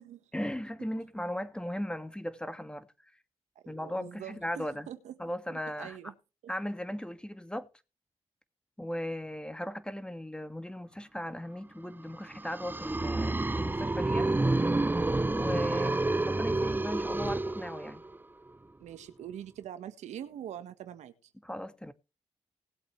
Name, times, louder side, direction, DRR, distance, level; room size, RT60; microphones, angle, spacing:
voice 1, 0.3-2.9 3.7-4.9 5.2-6.0 6.5-7.7 8.8-14.3 15.3-15.9 16.3-18.0 21.4-21.9, equal, 10° left, 2.1 m, -37 dB
voice 2, 3.5-5.2 5.5-6.1 15.7-16.0 18.8-21.3, right 10 dB, 85° right, 1.5 m, -44 dB
sound 1, 12.3-18.2, right 2 dB, 15° right, 0.6 m, -29 dB
19.5 x 8.1 x 3.3 m
supercardioid pair, 45°, 12 cm